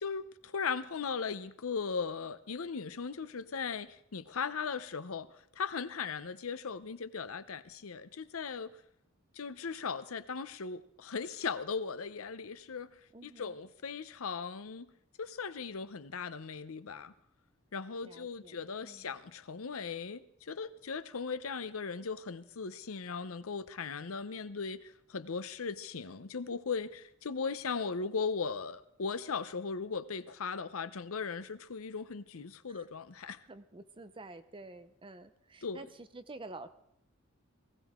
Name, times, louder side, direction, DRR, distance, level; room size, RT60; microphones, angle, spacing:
voice 1, 0.0-8.7 9.3-14.9 15.2-17.1 17.7-33.4 35.6-35.8, left 5 dB, 90° left, 0.7 m, -38 dB
voice 2, 13.1-13.6 18.0-19.1 32.7-32.9 33.5-36.7, right 2 dB, 25° right, 0.8 m, -49 dB
19.0 x 15.5 x 3.7 m
head